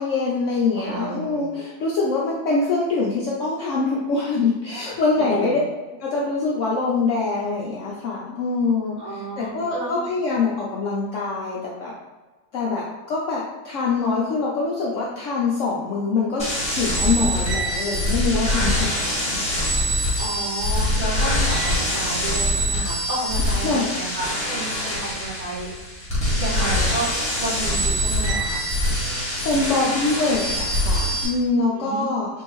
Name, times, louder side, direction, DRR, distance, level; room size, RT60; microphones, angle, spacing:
voice 1, 0.0-5.6 6.0-11.9 12.5-16.5 16.7-19.4 23.6-23.9 29.1-32.3, left 4 dB, 70° left, -4 dB, 0.7 m, -24 dB
voice 2, 0.7-1.5 4.8-5.0 5.3-5.5 9.0-10.0 20.2-25.7 26.3-28.6 31.7-32.0, right 1 dB, 45° right, -10 dB, 1.6 m, -31 dB
sound 1, 16.4-31.3, equal, 5° left, 1.2 m, -24 dB
3.7 x 2.7 x 2.9 m, 1.2 s
omnidirectional pair, 1.7 m